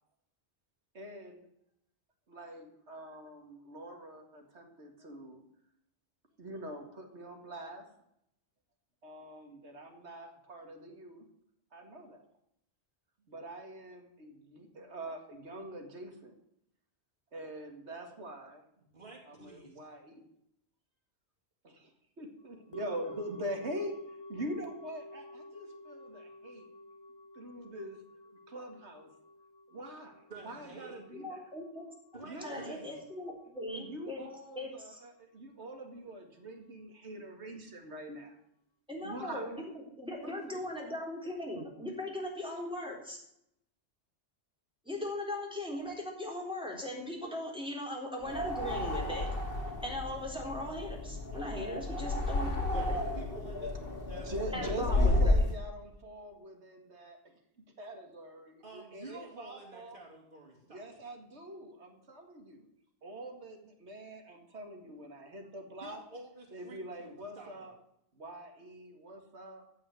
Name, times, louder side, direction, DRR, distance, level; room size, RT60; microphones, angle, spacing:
voice 1, 0.9-1.4 2.3-5.4 6.4-7.8 9.0-11.3 11.7-12.2 13.3-16.3 17.3-18.6 19.3-20.3 21.6-21.9 22.2-23.9 24.3-26.6 27.4-28.0 28.5-29.1 29.7-31.4 32.2-32.8 33.7-38.4 39.0-39.5 54.1-57.2 57.8-60.0 60.7-62.7 63.0-66.0 66.5-67.7 68.2-69.6, right 1 dB, 75° right, 3 dB, 2.4 m, -44 dB
voice 2, 18.8-19.8 30.3-31.0 32.1-33.0 40.2-40.6 51.3-51.8 52.7-55.2 58.6-61.0 65.8-67.7, right 2 dB, 45° right, -3 dB, 3.0 m, -50 dB
sound 1, 22.7-33.0 33.3-33.4, left 1 dB, 25° left, 0.8 m, -50 dB
voice 3, 31.1-31.9 32.4-34.2 34.5-35.0 38.9-43.2 44.9-49.3 49.8-53.0 54.5-55.4, left 1 dB, 5° right, -2 dB, 3.8 m, -39 dB
sound 2, 48.2-55.5, left 2 dB, 55° left, 2.2 m, -32 dB
15.5 x 5.6 x 9.5 m, 0.76 s
omnidirectional pair, 1.2 m